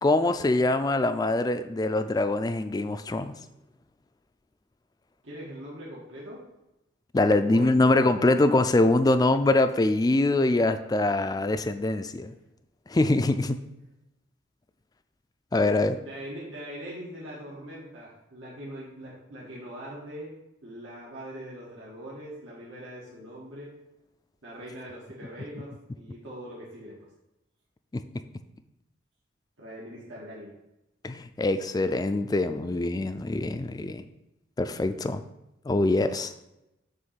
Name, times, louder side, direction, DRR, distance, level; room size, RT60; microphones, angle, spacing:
voice 1, 0.0-3.4 7.1-12.3 12.9-13.6 15.5-16.0 27.9-28.0 31.0-34.0 34.6-35.2 35.6-36.3, left 2 dB, 20° left, 10 dB, 0.3 m, -24 dB
voice 2, 5.2-6.4 7.5-7.7 8.1-8.4 11.3-11.4 16.0-20.4 20.6-23.7 24.4-27.0 29.6-30.5 32.3-32.9, equal, 85° right, -6 dB, 1.6 m, -42 dB
7.8 x 3.1 x 5.7 m, 0.90 s
head